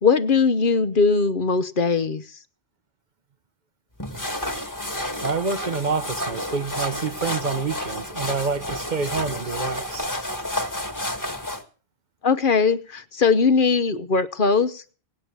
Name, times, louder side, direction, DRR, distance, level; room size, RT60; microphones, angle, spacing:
voice 1, 0.0-2.2 12.2-14.9, left 5 dB, 55° left, 1.1 m, -20 dB
sound 1, 4.0-11.6, left 1 dB, 15° left, 1.7 m, -30 dB
voice 2, 5.2-10.1, right 4 dB, 45° right, 1.0 m, -27 dB
19.0 x 9.0 x 6.8 m
omnidirectional pair, 1.1 m